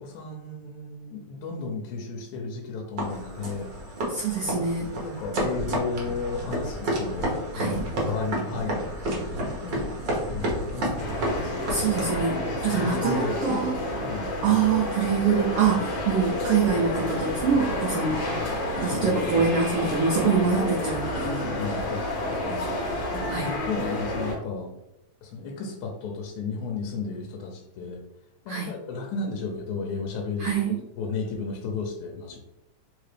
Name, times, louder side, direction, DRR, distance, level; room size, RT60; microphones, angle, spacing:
voice 1, 0.1-3.7 5.0-10.0 10.3-11.5 12.5-13.6 14.0-14.4 18.8-19.5 21.4-24.7 25.2-28.0 28.5-32.4, left 4 dB, 80° left, 1 dB, 2.0 m, -34 dB
sound 1, 3.0-12.2, right 1 dB, 60° right, 1.2 m, -30 dB
voice 2, 4.1-4.9 7.5-7.9 11.7-13.8 14.4-18.2 18.8-21.8 23.3-23.5 28.5-28.7 30.4-30.8, right 5 dB, 85° right, -2 dB, 1.3 m, -25 dB
sound 2, 11.0-24.3, left 1 dB, 65° left, 1.6 m, -30 dB
4.7 x 2.9 x 3.2 m, 0.86 s
omnidirectional pair, 3.4 m